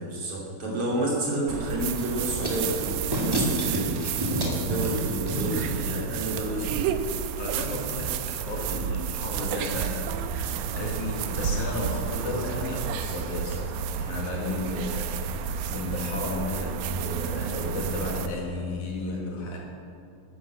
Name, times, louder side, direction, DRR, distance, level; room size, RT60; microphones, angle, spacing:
voice 1, 0.0-4.2 4.5-6.8, right 1 dB, 45° right, -4 dB, 3.6 m, -30 dB
sound 1, 1.5-18.3, right 8 dB, 85° right, 2.4 m, -31 dB
sound 2, 2.0-6.7, right 1 dB, 10° right, 1.1 m, -30 dB
voice 2, 7.4-19.6, left 2 dB, 65° left, -1 dB, 3.2 m, -33 dB
12.5 x 11.0 x 7.4 m, 2.4 s
omnidirectional pair, 3.9 m